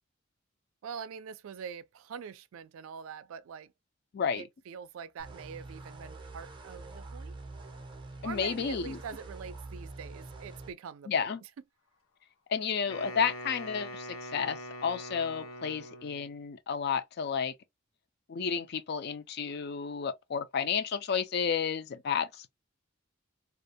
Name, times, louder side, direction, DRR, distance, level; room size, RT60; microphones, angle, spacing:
voice 1, 0.8-3.7 4.3-7.3 8.2-11.3, right 6 dB, 80° right, 0.3 m, -44 dB
voice 2, 4.1-4.5 8.2-9.0 11.1-11.4 12.5-17.5 18.3-22.5, left 6 dB, 50° left, 0.4 m, -32 dB
sound 1, 5.2-10.7, right 2 dB, 25° right, 0.5 m, -45 dB
Wind instrument woodwind instrument, 12.9-16.3, left 1 dB, 75° left, 0.7 m, -43 dB
2.4 x 2.1 x 2.5 m
head